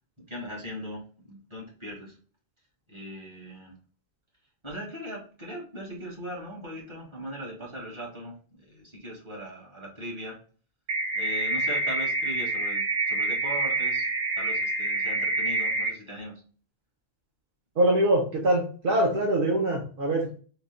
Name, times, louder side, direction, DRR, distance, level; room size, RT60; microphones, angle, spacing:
voice 1, 0.3-1.0 1.3-2.1 2.9-3.7 4.6-10.4 11.1-14.1 14.4-16.3, equal, 25° right, -5 dB, 1.5 m, -39 dB
sound 1, 10.9-15.9, right 2 dB, 80° right, 1.0 m, -27 dB
voice 2, 17.8-20.4, right 1 dB, 50° right, -2 dB, 0.9 m, -24 dB
3.8 x 2.2 x 3.7 m, 0.40 s
omnidirectional pair, 1.2 m